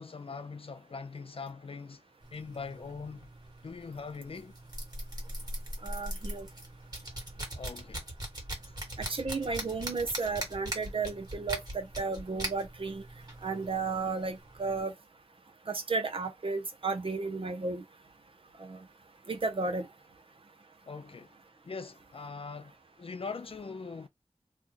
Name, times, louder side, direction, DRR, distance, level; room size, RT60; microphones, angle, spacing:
voice 1, 0.0-2.0 2.3-3.3 3.6-4.5 7.5-8.0 20.9-21.4 21.6-22.7 23.0-24.1, left 4 dB, 60° left, 0.6 m, -41 dB
sound 1, 2.2-14.8, right 1 dB, 40° right, 1.7 m, -41 dB
voice 2, 5.8-6.5 9.0-13.0 13.4-14.9 15.7-17.8 18.6-18.8 19.3-19.9, right 4 dB, 55° right, 0.7 m, -33 dB
2.9 x 2.3 x 3.9 m
wide cardioid pair, 70°, 11 cm